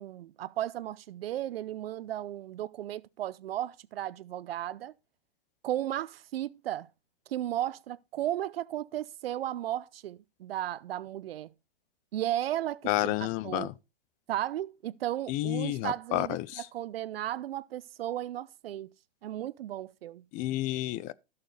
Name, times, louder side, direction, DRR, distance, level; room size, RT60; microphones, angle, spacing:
voice 1, 0.0-4.9 5.6-6.9 7.3-11.5 12.1-13.7 14.3-18.9 19.2-20.2, right 12 dB, 75° right, 0.6 m, -35 dB
voice 2, 12.9-13.7 15.3-16.6 20.3-21.1, left 16 dB, 25° left, 0.5 m, -30 dB
14.0 x 6.8 x 3.9 m
hypercardioid pair, 135°, 30 cm